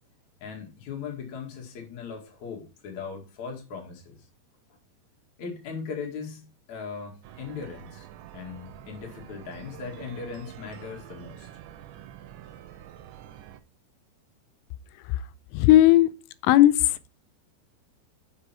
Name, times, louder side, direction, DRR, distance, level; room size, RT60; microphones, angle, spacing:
voice 1, 0.4-4.2 5.4-8.1 8.3-11.5, left 5 dB, 50° left, 2.9 m, -38 dB
sound 1, 7.2-13.6, right 11 dB, 80° right, 3.1 m, -46 dB
voice 2, 15.5-16.1 16.4-17.0, left 14 dB, 90° left, 2.9 m, -16 dB
6.9 x 6.8 x 4.3 m
omnidirectional pair, 5.2 m